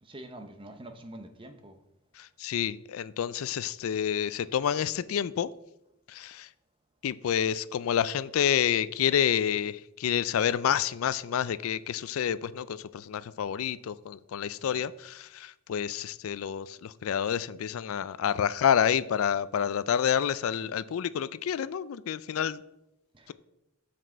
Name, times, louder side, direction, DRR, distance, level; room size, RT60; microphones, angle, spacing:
voice 1, 0.0-1.8 14.6-14.8 23.1-23.3, right 1 dB, 25° right, 0.8 m, -46 dB
voice 2, 2.2-5.5 6.1-6.5 7.0-22.6, left 8 dB, 80° left, 0.4 m, -28 dB
7.5 x 6.0 x 4.5 m
head